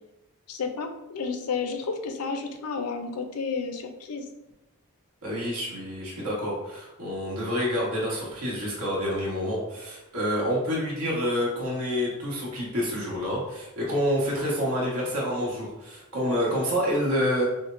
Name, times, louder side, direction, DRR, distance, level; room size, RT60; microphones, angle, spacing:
voice 1, 0.5-4.3, left 5 dB, 85° left, 6 dB, 0.5 m, -31 dB
voice 2, 5.2-17.4, equal, 90° right, -4 dB, 1.3 m, -28 dB
5.9 x 2.1 x 2.5 m, 0.95 s
head